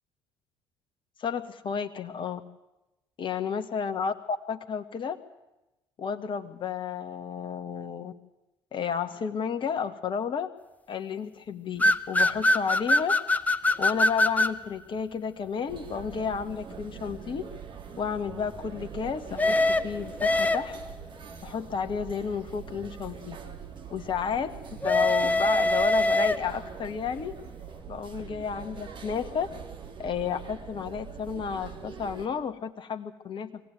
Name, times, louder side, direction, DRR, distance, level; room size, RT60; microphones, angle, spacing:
voice 1, 1.2-2.4 3.2-5.2 6.0-8.1 8.7-10.5 10.9-13.1 13.8-17.4 18.0-20.8 21.4-23.4 23.9-27.3 27.9-29.5 30.0-33.6, left 6 dB, 45° left, 7 dB, 1.8 m, -32 dB
sound 1, 11.8-14.6 19.4-20.9 24.8-26.7, left 1 dB, 15° left, 1.4 m, -23 dB
sound 2, 15.7-32.3, right 7 dB, 45° right, 3.5 m, -43 dB
23.5 x 17.0 x 9.2 m, 0.96 s
hypercardioid pair, 55°, 12 cm